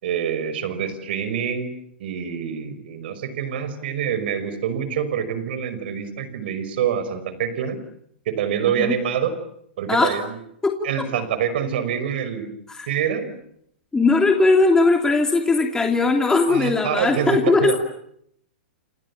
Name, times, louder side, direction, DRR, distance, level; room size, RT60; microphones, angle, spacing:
voice 1, 0.0-1.7 2.0-7.8 8.3-9.3 9.8-10.4 10.8-12.5 12.9-13.4 16.5-17.8, right 8 dB, 60° right, 12 dB, 5.6 m, -26 dB
voice 2, 10.6-11.1 12.8-12.9 13.9-17.7, left 3 dB, 10° left, 3 dB, 2.9 m, -19 dB
29.0 x 28.0 x 7.3 m, 0.73 s
hypercardioid pair, 120°, 6 cm